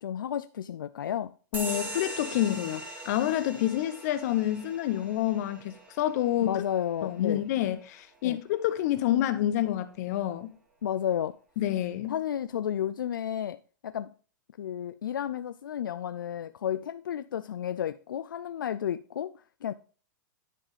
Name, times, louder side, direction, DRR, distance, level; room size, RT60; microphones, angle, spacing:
voice 1, 0.0-1.3 6.4-7.4 8.2-8.4 10.8-11.4 12.0-13.6 13.8-14.1 14.6-19.7, left 10 dB, 85° left, 0.4 m, -32 dB
voice 2, 1.5-6.6 7.0-10.5 11.6-12.1, left 12 dB, 55° left, 1.0 m, -28 dB
sound 1, 1.5-8.6, right 1 dB, 15° right, 2.0 m, -42 dB
10.0 x 3.7 x 5.0 m
hypercardioid pair, 130°, 11 cm